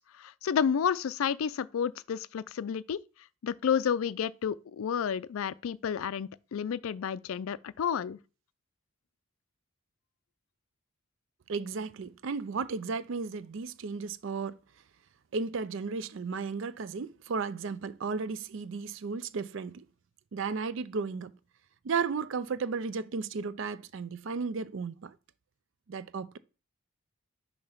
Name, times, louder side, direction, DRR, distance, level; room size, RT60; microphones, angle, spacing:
voice 1, 0.0-3.0 3.4-8.2, left 7 dB, 70° left, 0.3 m, -31 dB
voice 2, 11.5-14.6 15.3-19.8 20.3-21.3 21.8-25.2 25.9-26.4, right 5 dB, 60° right, 0.4 m, -34 dB
6.7 x 2.8 x 5.7 m
head